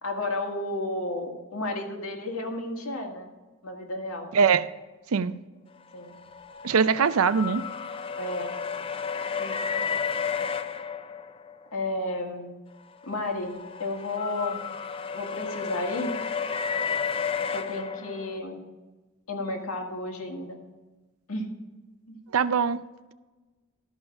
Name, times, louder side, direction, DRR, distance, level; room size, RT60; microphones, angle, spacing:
voice 1, 0.0-3.3 3.6-4.3 5.9-6.2 8.2-8.5 9.4-9.8 11.7-12.5 13.0-14.6 15.1-16.2 17.5-18.6 19.3-20.6 21.3-21.5 22.1-22.2, left 2 dB, 80° left, 2 dB, 1.9 m, -32 dB
voice 2, 4.3-4.7 5.1-5.3 6.6-7.6 22.3-22.8, right 6 dB, 80° right, 14 dB, 0.5 m, -22 dB
sound 1, 6.0-11.7 13.0-18.4, left 6 dB, 25° left, 0.3 m, -32 dB
12.5 x 5.6 x 5.9 m, 1.2 s
head